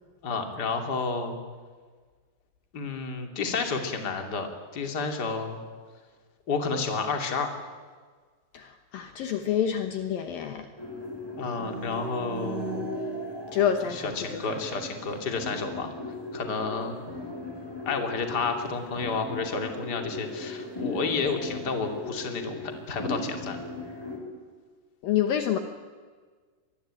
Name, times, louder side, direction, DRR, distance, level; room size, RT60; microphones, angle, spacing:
voice 1, 0.2-1.4 2.7-4.5 4.7-5.6 6.5-7.5 11.4-12.9 13.9-15.9 16.3-17.0 17.9-23.6, left 4 dB, 30° left, 5 dB, 2.7 m, -30 dB
voice 2, 8.5-10.7 13.5-14.4 25.0-25.6, left 9 dB, 70° left, 7 dB, 2.6 m, -27 dB
sound 1, 10.8-24.2, left 1 dB, 5° left, 5.0 m, -37 dB
25.0 x 21.0 x 9.0 m, 1.5 s
omnidirectional pair, 4.7 m